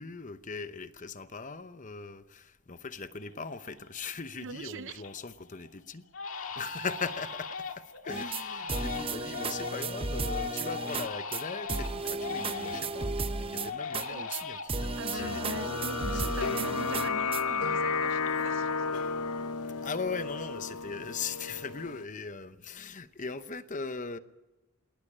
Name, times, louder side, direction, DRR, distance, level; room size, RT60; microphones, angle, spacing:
voice 1, 0.0-6.0 6.4-15.6 16.1-16.4 19.8-24.2, left 4 dB, 35° left, 0.8 m, -39 dB
Crying sobbing, 3.0-3.1 3.5-4.0 4.4-5.2 5.5-5.7 6.1-13.1 13.5-16.9 17.1-18.6 18.9-19.5, left 5 dB, 65° left, 1.8 m, -40 dB
voice 2, 4.4-5.0 14.0-14.3 15.0-19.2, right 4 dB, 55° right, 0.7 m, -42 dB
sound 1, 8.1-8.4 8.7-11.1 11.3-11.4 11.7-14.1 14.3-14.4 14.7-17.4, right 3 dB, 25° right, 0.8 m, -34 dB
sound 2, 15.2-22.0, left 5 dB, 85° left, 0.9 m, -32 dB
20.0 x 18.5 x 8.8 m
head